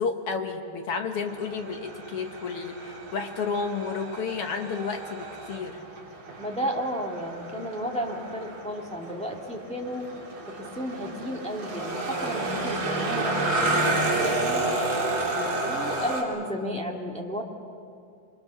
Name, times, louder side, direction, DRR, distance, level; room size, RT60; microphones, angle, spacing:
voice 1, 0.0-5.8, left 5 dB, 65° left, 5 dB, 1.5 m, -31 dB
sound 1, 1.2-16.2, right 2 dB, 40° right, 3.7 m, -31 dB
voice 2, 6.4-10.1 10.6-13.3 13.6-14.6 15.3-17.4, equal, 5° left, -1 dB, 0.5 m, -33 dB
27.0 x 23.0 x 6.6 m, 2.4 s
omnidirectional pair, 4.0 m